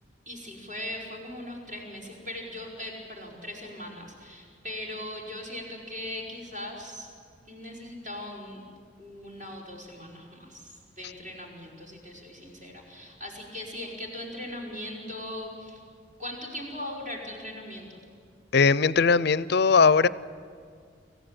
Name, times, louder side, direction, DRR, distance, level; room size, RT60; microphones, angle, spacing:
voice 1, 0.3-7.1 7.5-8.6 9.0-15.8 16.2-18.1, left 1 dB, 40° right, -2 dB, 5.1 m, -39 dB
voice 2, 18.5-20.1, left 5 dB, 55° left, 18 dB, 0.5 m, -19 dB
26.5 x 15.0 x 8.9 m, 2.1 s
head